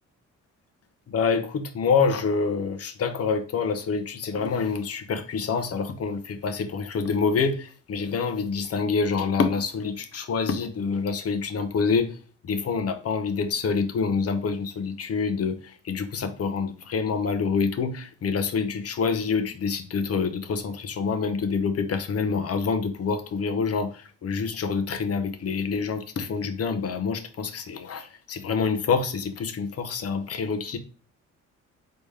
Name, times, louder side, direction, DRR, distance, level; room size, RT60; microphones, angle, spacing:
voice 1, 1.1-12.2 12.4-30.8, left 5 dB, 50° left, 8 dB, 0.9 m, -27 dB
4.0 x 3.6 x 3.3 m, 0.38 s
cardioid pair, 90°, 30 cm